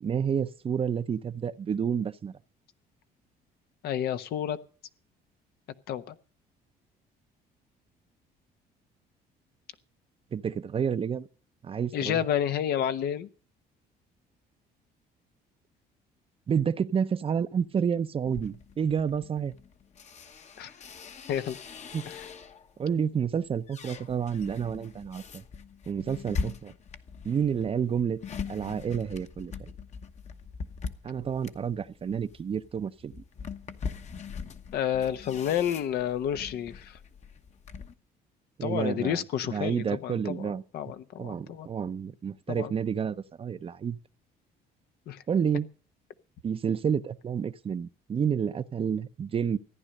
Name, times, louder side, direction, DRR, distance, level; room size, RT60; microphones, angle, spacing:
voice 1, 0.0-2.3 10.3-11.3 11.6-12.3 16.5-19.5 21.9-22.0 22.8-25.4 25.9-26.7 27.2-28.2 28.5-29.7 31.0-33.2 38.6-39.2 39.5-40.6 41.2-44.0 45.3-45.7 46.4-49.6, right 7 dB, 35° right, 0.7 m, -29 dB
voice 2, 3.8-4.6 5.9-6.1 11.9-13.3 20.6-20.7 21.3-21.6 22.1-22.2 34.7-37.0 38.6-41.7 42.5-42.7 45.1-45.2, left 10 dB, 70° left, 1.0 m, -30 dB
sound 1, 18.2-22.8 23.2-37.9, left 5 dB, 40° left, 1.1 m, -41 dB
15.0 x 10.0 x 6.6 m
cardioid pair, 110°, 17 cm